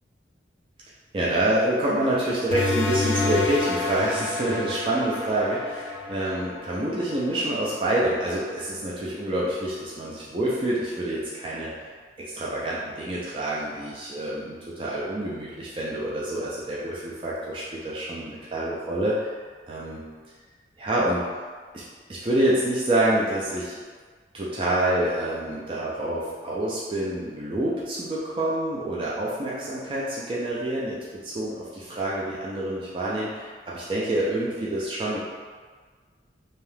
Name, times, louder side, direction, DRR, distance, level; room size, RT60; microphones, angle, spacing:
voice 1, 1.1-11.9 12.3-19.1 19.7-20.0 20.8-21.2 21.7-21.8 22.1-23.8 24.3-35.2, right 1 dB, 30° right, -6 dB, 0.4 m, -27 dB
sound 1, 2.5-7.7, left 3 dB, 65° left, 0.5 m, -29 dB
2.7 x 2.3 x 3.2 m, 1.5 s
head